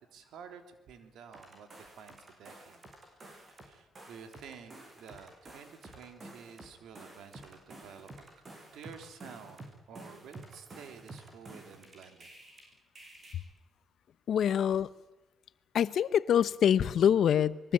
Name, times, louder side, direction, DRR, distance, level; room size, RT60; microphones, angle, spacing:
voice 1, 0.0-2.8 3.6-8.2 8.7-12.3, right 6 dB, 80° right, 6 dB, 3.3 m, -51 dB
sound 1, 1.3-3.7 3.9-12.6 12.9-13.3, right 2 dB, 35° right, 7.9 m, -50 dB
voice 2, 14.3-14.9 15.7-17.7, left 9 dB, 65° left, 16 dB, 0.9 m, -25 dB
24.5 x 22.0 x 8.9 m, 1.0 s
cardioid pair, 90°, 0 cm